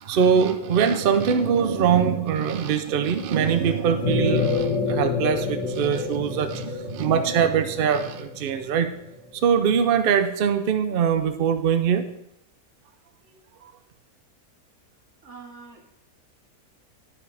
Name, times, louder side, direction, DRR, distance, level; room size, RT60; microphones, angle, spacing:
voice 1, 0.0-8.9 9.3-12.0, right 7 dB, 80° right, 9 dB, 0.4 m, -22 dB
sound 1, 4.0-9.1, left 4 dB, 55° left, 1.5 m, -28 dB
voice 2, 15.2-16.0, right 4 dB, 45° right, 1 dB, 1.7 m, -45 dB
12.0 x 5.7 x 3.4 m, 0.80 s
omnidirectional pair, 1.8 m